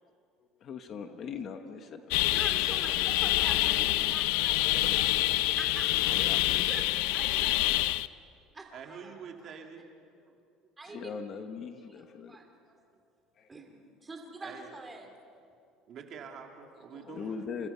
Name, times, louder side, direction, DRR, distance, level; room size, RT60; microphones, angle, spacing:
voice 1, 0.4-2.6 6.1-6.7 10.8-12.4 13.4-13.5 16.9-17.7, left 6 dB, 30° left, 7 dB, 1.0 m, -41 dB
sound 1, 2.1-8.1, left 17 dB, 80° left, 0.6 m, -27 dB
voice 2, 2.3-7.8 8.5-9.1 9.4-9.5 10.8-11.1 11.9-12.8 13.5-15.1, right 3 dB, 10° right, 3 dB, 2.7 m, -45 dB
voice 3, 8.7-9.9 10.1-10.4 10.9-11.0 14.4-14.7 15.9-17.4, right 6 dB, 35° right, 3 dB, 2.4 m, -46 dB
29.5 x 29.5 x 5.6 m, 2.4 s
cardioid pair, 180°, 0 cm